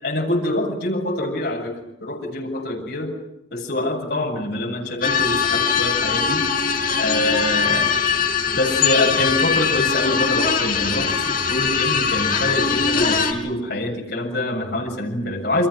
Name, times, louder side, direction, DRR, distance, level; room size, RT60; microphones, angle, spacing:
voice 1, 0.0-3.2 3.5-6.5 7.0-7.9 8.5-15.7, left 1 dB, 65° left, -1 dB, 7.2 m, -25 dB
sound 1, 5.0-13.3, left 6 dB, 50° left, 4.5 m, -21 dB
29.5 x 27.0 x 6.4 m, 0.85 s
head